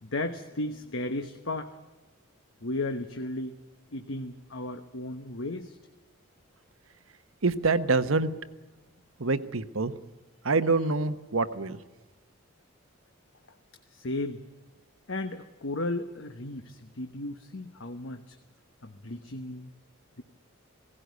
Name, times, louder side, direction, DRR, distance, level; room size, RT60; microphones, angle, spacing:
voice 1, 0.0-1.7 2.6-3.6 3.9-5.8 13.9-14.4 15.1-18.3 18.8-19.7 20.2-20.3, left 2 dB, 65° left, 7 dB, 1.1 m, -34 dB
voice 2, 7.4-8.3 9.2-9.9 10.4-11.8, right 3 dB, 85° right, 11 dB, 1.1 m, -26 dB
17.5 x 16.5 x 9.4 m, 1.2 s
head